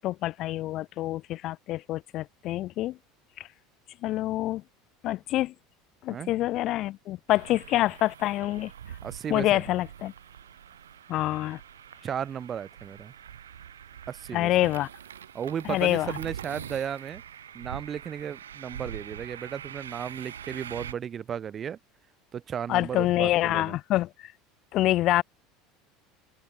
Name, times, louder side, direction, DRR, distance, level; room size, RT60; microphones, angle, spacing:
voice 1, 0.0-3.0 3.4-3.5 4.0-4.6 5.0-5.5 6.0-8.7 9.3-10.1 11.1-11.6 14.3-14.9 15.7-16.2 22.7-24.3 24.7-25.2, left 15 dB, 45° left, 0.8 m, -26 dB
sound 1, 7.3-20.9, right 9 dB, 75° right, 1.6 m, -44 dB
voice 2, 9.0-9.6 12.0-13.1 14.1-14.7 15.3-17.2 17.5-21.8 22.3-23.8, right 8 dB, 30° right, 2.6 m, -35 dB
figure-of-eight pair, 70°, 0 cm